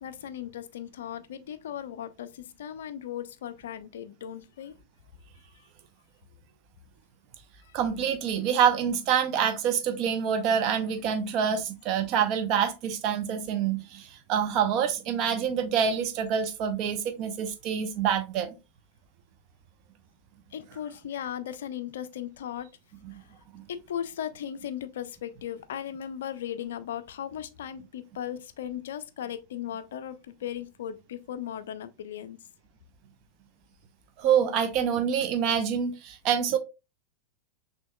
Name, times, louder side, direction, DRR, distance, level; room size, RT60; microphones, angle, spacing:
voice 1, 0.0-4.7 7.7-7.8 20.5-22.7 23.1-23.2 23.7-32.4, left 10 dB, 60° left, 0.4 m, -37 dB
voice 2, 7.7-18.5 23.5-23.6 34.2-36.6, right 8 dB, 40° right, 0.7 m, -26 dB
6.1 x 2.8 x 2.2 m
figure-of-eight pair, 90°, 0 cm